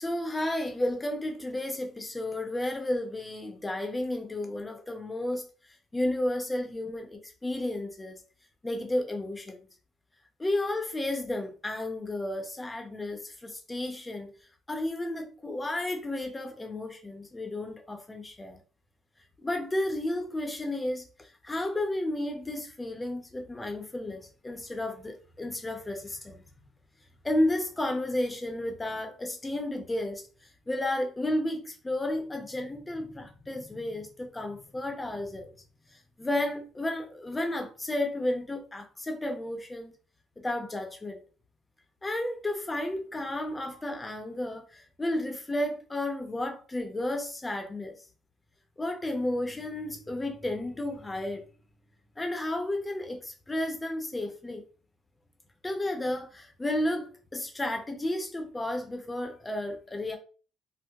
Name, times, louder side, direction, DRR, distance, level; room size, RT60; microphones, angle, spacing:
voice 1, 0.0-5.5 5.9-8.2 8.6-9.6 10.4-14.3 14.7-18.6 19.4-21.0 21.4-26.4 27.2-30.2 30.7-35.5 36.2-39.9 40.4-41.2 42.0-44.6 45.0-48.0 48.8-51.5 52.2-54.6 55.6-60.2, left 1 dB, 15° left, 0.6 m, -32 dB
4.5 x 2.1 x 2.4 m
cardioid pair, 120°, 0 cm